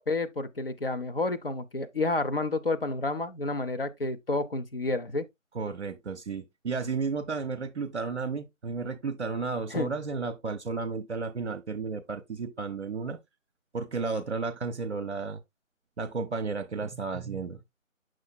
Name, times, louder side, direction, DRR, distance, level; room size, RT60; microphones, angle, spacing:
voice 1, 0.0-5.3 9.7-9.9, left 2 dB, 45° left, 0.7 m, -30 dB
voice 2, 5.5-13.2 13.7-15.4 16.0-17.6, right 4 dB, 55° right, 0.7 m, -33 dB
7.0 x 6.3 x 2.3 m
figure-of-eight pair, 160°, 40 cm